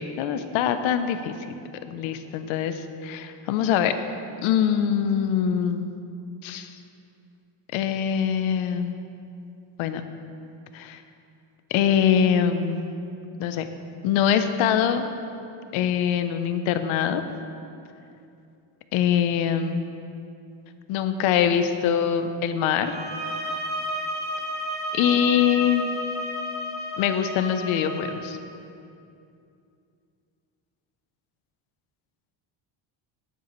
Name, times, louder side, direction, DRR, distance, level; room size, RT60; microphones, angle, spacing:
voice 1, 0.2-1.3 1.9-3.9 4.4-6.0 6.4-6.7 7.7-9.0 9.8-10.0 10.7-11.0 11.7-12.9 13.4-13.7 14.0-15.1 15.7-17.2 18.9-19.8 20.9-22.9 24.9-25.8 27.0-28.4, left 8 dB, 85° left, 9 dB, 0.8 m, -23 dB
sound 1, 22.8-28.1, equal, 20° right, 2.3 m, -32 dB
12.5 x 10.0 x 3.1 m, 2.6 s
cardioid pair, 160°, 47 cm